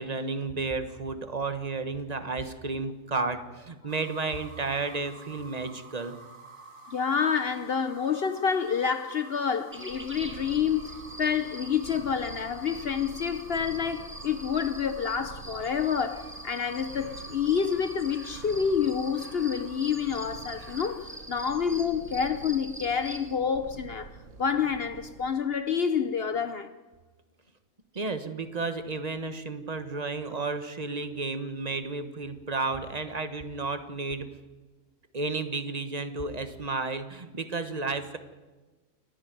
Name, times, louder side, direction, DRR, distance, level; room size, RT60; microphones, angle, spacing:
voice 1, 0.0-6.2 27.9-34.3 35.1-38.2, right 3 dB, 30° right, 1.4 m, -32 dB
sound 1, 3.9-21.2, right 2 dB, 60° right, 2.6 m, -49 dB
voice 2, 6.9-24.1 24.4-26.7, left 7 dB, 50° left, 1.0 m, -28 dB
sound 2, 9.7-23.3, right 1 dB, 10° right, 1.7 m, -45 dB
Purr, 9.9-25.3, right 5 dB, 75° right, 1.7 m, -48 dB
29.0 x 10.5 x 9.4 m
omnidirectional pair, 1.4 m